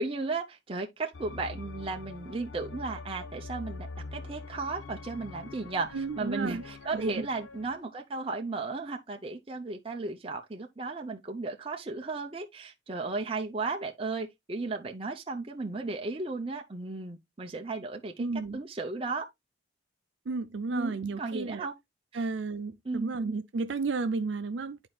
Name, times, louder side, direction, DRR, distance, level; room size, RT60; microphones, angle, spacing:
voice 1, 0.0-18.3 18.5-19.3 20.7-21.7 22.1-22.3 22.8-23.2, right 3 dB, 30° right, 0.6 m, -35 dB
sound 1, 1.1-7.8, left 3 dB, 85° left, 0.7 m, -44 dB
voice 2, 5.9-6.6 6.9-7.2 18.2-18.6 20.3-21.7 22.1-24.9, right 4 dB, 70° right, 0.5 m, -32 dB
12.0 x 4.4 x 2.3 m
head